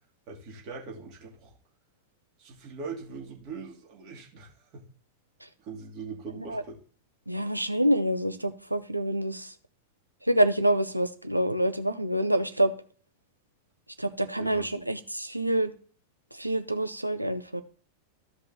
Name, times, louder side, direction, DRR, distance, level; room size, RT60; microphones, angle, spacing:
voice 1, 0.3-1.5 2.4-4.9 5.6-6.8 14.4-14.7, right 4 dB, 40° right, 2.6 m, -41 dB
voice 2, 7.3-9.5 10.3-12.7 14.0-15.7 16.4-17.6, right 1 dB, 85° right, 0.7 m, -26 dB
14.5 x 5.3 x 2.8 m
figure-of-eight pair, 90°, 0 cm